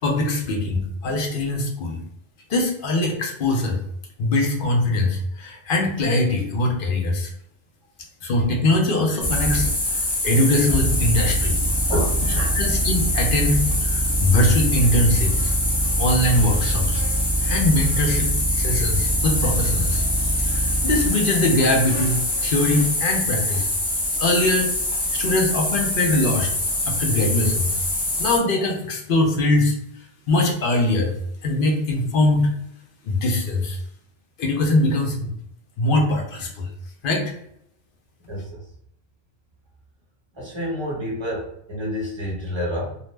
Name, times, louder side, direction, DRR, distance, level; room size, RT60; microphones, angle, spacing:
voice 1, 0.0-2.0 2.5-3.8 4.2-7.3 8.2-10.0 10.2-11.6 12.5-15.5 16.0-17.0 17.4-23.8 24.2-26.5 26.8-27.7 28.2-29.8 30.3-31.2 31.4-32.5 33.0-33.8 34.4-35.3 35.8-36.7 37.0-37.3, left 2 dB, 60° left, 2 dB, 0.8 m, -22 dB
sound 1, 9.2-28.4, equal, 30° left, 0.6 m, -23 dB
voice 2, 11.9-12.6 38.3-38.6 40.3-43.0, equal, 30° right, -4 dB, 1.0 m, -28 dB
2.6 x 2.0 x 3.1 m, 0.73 s
omnidirectional pair, 1.0 m